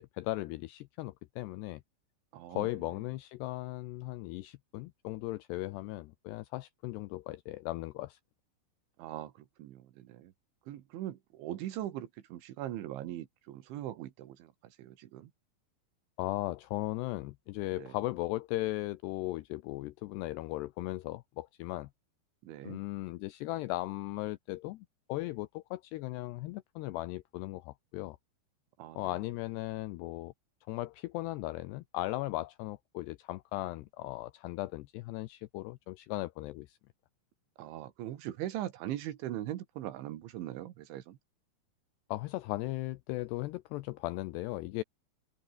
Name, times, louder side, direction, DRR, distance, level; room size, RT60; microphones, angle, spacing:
voice 1, 0.0-1.8 2.5-8.2 16.2-21.9 22.6-28.2 29.0-30.3 30.7-36.8 42.1-44.8, left 18 dB, 85° left, 2.4 m, -37 dB
voice 2, 2.3-2.7 9.0-10.3 10.7-15.3 17.8-18.0 22.4-22.8 28.8-29.1 37.6-41.2, right 13 dB, 75° right, 3.9 m, -41 dB
open air
omnidirectional pair, 5.6 m